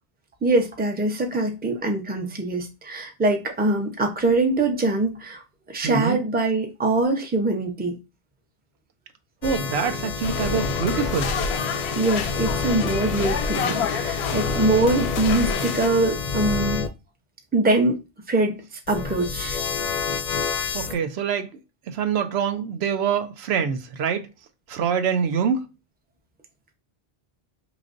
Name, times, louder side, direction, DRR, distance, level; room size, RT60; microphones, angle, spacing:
voice 1, 0.4-5.4 5.7-8.0 12.0-16.9 17.5-18.0 18.3-19.6, right 2 dB, 10° right, 0.6 m, -23 dB
voice 2, 5.8-6.2 9.4-11.3 20.7-21.5 21.9-24.3 24.7-25.6, right 7 dB, 85° right, 0.9 m, -25 dB
sound 1, 9.4-16.9 18.9-21.0, left 4 dB, 50° left, 0.5 m, -28 dB
sound 2, 10.2-15.9, left 7 dB, 90° left, 0.8 m, -30 dB
5.0 x 3.1 x 2.5 m
omnidirectional pair, 1.1 m